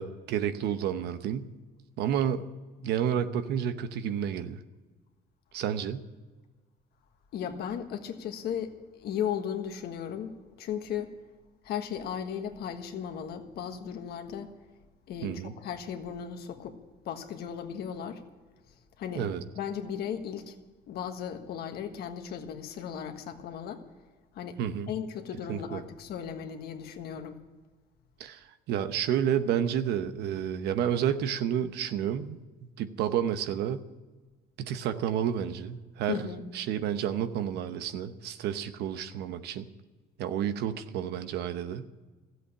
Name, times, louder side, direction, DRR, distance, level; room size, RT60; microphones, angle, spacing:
voice 1, 0.0-1.5 2.0-2.5 2.8-4.6 5.5-6.1 15.2-15.5 19.1-19.4 24.6-24.9 25.5-25.8 28.2-32.4 32.8-33.9 34.6-36.2 36.5-39.7 40.2-41.8, right 9 dB, 80° right, 11 dB, 0.9 m, -30 dB
voice 2, 7.3-11.1 11.6-14.5 15.1-16.8 17.0-18.2 19.0-19.3 19.5-20.5 20.9-23.8 24.3-24.6 24.9-27.4 36.1-36.4, left 8 dB, 70° left, 6 dB, 1.5 m, -36 dB
14.0 x 7.9 x 10.0 m, 1.3 s
cardioid pair, 110°, 17 cm